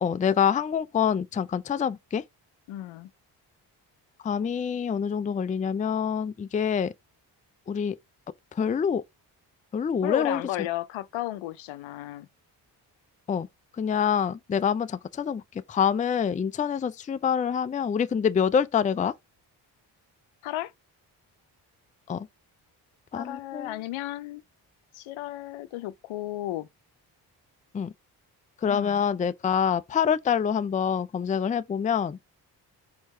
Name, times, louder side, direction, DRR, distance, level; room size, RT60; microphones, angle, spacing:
voice 1, 0.0-2.2 4.2-6.9 7.7-8.0 8.5-9.0 9.7-10.4 13.3-13.5 13.8-15.4 15.7-19.1 22.1-22.3 23.1-23.7 27.7-27.9 28.6-32.2, left 7 dB, 15° left, 0.4 m, -26 dB
voice 2, 2.7-3.1 10.0-12.3 20.4-20.7 23.1-24.4 24.9-26.7 28.7-29.0, left 15 dB, 75° left, 0.6 m, -34 dB
4.5 x 2.8 x 4.3 m
supercardioid pair, 45°, 48 cm